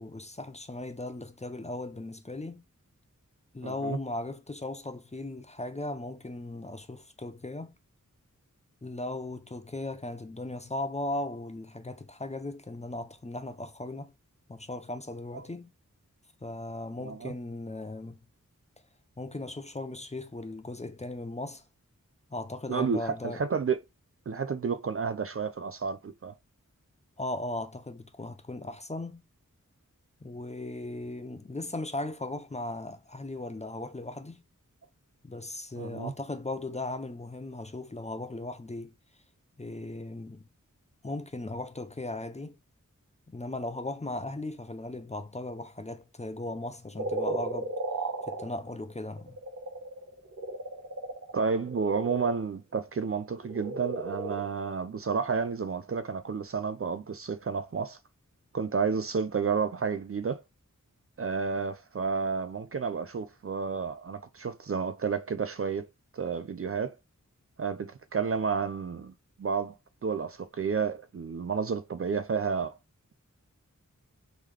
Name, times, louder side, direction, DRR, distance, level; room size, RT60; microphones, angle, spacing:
voice 1, 0.0-2.6 3.5-7.7 8.8-14.1 14.5-15.7 16.4-18.2 19.2-21.6 22.3-23.4 27.2-29.2 30.2-34.4 35.2-38.9 39.6-40.4 41.0-42.6 43.3-47.7 48.3-49.4, left 2 dB, 20° left, 0.5 m, -37 dB
voice 2, 3.6-4.0 17.0-17.3 22.7-23.8 24.3-26.4 35.8-36.1 51.3-58.0 58.5-60.4 61.2-65.9 66.1-67.0 67.6-69.1 69.4-69.8 70.0-72.8, right 5 dB, 45° right, 0.4 m, -31 dB
sound 1, 47.0-52.4 53.3-54.7, right 2 dB, 60° right, 1.2 m, -35 dB
3.7 x 3.1 x 3.2 m
wide cardioid pair, 50°, 32 cm